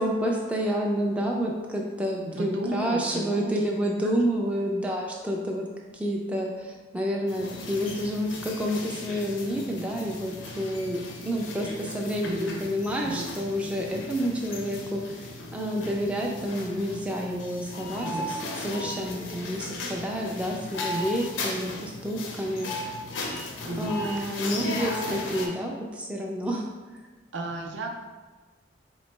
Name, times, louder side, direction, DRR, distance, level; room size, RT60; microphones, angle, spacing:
voice 1, 0.0-5.7 5.9-15.3 15.5-22.7 23.8-26.7, equal, 5° right, -1 dB, 0.3 m, -29 dB
voice 2, 2.2-3.6 12.2-12.7 13.0-13.4 18.0-18.4 23.7-24.6 27.3-27.9, right 2 dB, 65° right, 2 dB, 0.5 m, -35 dB
sound 1, 7.3-25.5, left 2 dB, 85° left, 0.6 m, -36 dB
4.1 x 3.1 x 3.1 m, 1.3 s
head